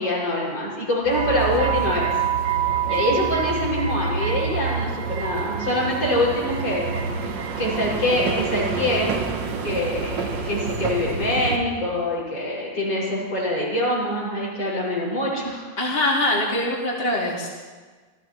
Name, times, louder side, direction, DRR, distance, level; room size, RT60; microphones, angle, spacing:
voice 1, 0.0-2.1 2.8-9.1 9.6-15.7, left 1 dB, 65° left, -5 dB, 6.6 m, -25 dB
sound 1, 1.0-11.6, right 6 dB, 65° right, 1.8 m, -27 dB
voice 2, 15.8-17.5, left 1 dB, 30° left, -5 dB, 2.7 m, -23 dB
26.0 x 17.0 x 3.1 m, 1.4 s
omnidirectional pair, 2.2 m